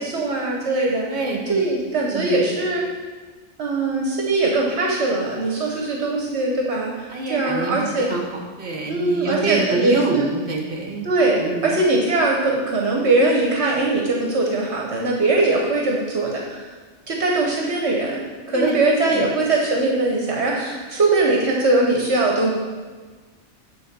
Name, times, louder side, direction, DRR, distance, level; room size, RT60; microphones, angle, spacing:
voice 1, 0.0-1.1 1.5-2.8 3.6-8.1 8.9-10.3 11.0-16.6 17.1-22.5, right 2 dB, 65° right, -1 dB, 1.3 m, -21 dB
voice 2, 1.1-1.6 2.1-2.5 7.1-8.2 8.6-11.0 11.4-11.7 18.5-18.8 19.1-19.3, right 3 dB, 50° right, 1 dB, 1.4 m, -26 dB
8.8 x 4.2 x 6.7 m, 1.4 s
omnidirectional pair, 1.2 m